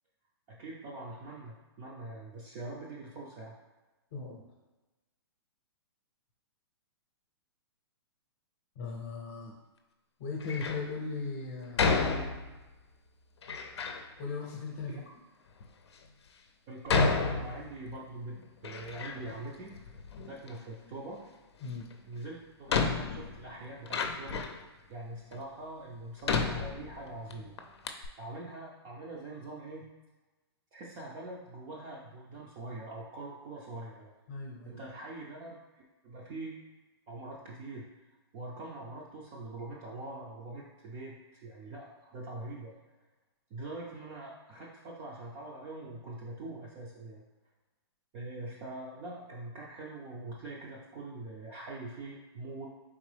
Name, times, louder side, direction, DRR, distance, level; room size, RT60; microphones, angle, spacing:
voice 1, 0.5-3.6 14.9-15.0 16.7-19.8 20.2-21.2 22.1-24.4 24.9-27.5 28.2-29.9 30.7-34.1 34.6-36.6 37.1-37.9 38.3-42.7 43.5-47.2 48.1-52.7, right 2 dB, 20° right, -4 dB, 0.4 m, -43 dB
voice 2, 4.1-4.4 8.8-9.5 10.2-11.8 14.2-15.0 21.6-21.9 34.3-34.8, left 4 dB, 35° left, -1 dB, 0.7 m, -38 dB
Door, 10.4-10.9 11.8-12.7 13.4-14.0 14.8-14.9 15.6-15.7 16.9-18.0 18.4-19.4 19.7-20.6 21.9-22.0 22.7-24.6 25.3-25.4 26.2-27.3 27.6-27.7 27.8-28.1, left 4 dB, 80° left, 0.6 m, -31 dB
4.4 x 3.6 x 3.3 m, 1.2 s
hypercardioid pair, 165°, 14 cm